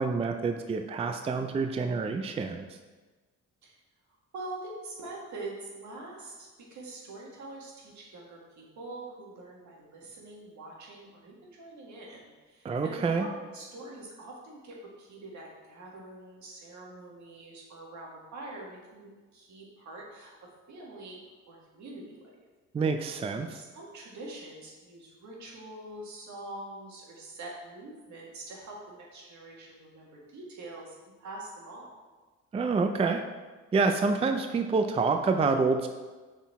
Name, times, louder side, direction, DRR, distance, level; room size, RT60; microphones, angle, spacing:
voice 1, 0.0-2.7 12.6-13.3 22.7-23.6 32.5-33.2 33.7-35.9, right 4 dB, 20° right, 6 dB, 0.4 m, -27 dB
voice 2, 4.3-20.4 20.7-21.2 21.5-22.3 23.3-31.9, right 2 dB, 70° right, -2 dB, 1.8 m, -44 dB
6.2 x 4.0 x 4.1 m, 1.3 s
cardioid pair, 90°, 30 cm